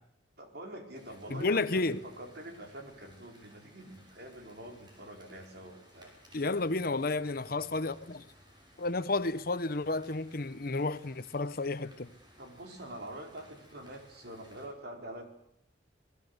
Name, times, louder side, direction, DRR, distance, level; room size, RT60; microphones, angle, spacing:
voice 1, 0.4-6.1 12.4-15.3, right 1 dB, 60° right, 4.6 m, -46 dB
sound 1, 0.9-14.7, equal, 25° right, 7.1 m, -59 dB
voice 2, 1.3-2.0 6.3-8.2 8.8-12.1, left 3 dB, 55° left, 1.0 m, -31 dB
28.0 x 20.0 x 8.1 m
head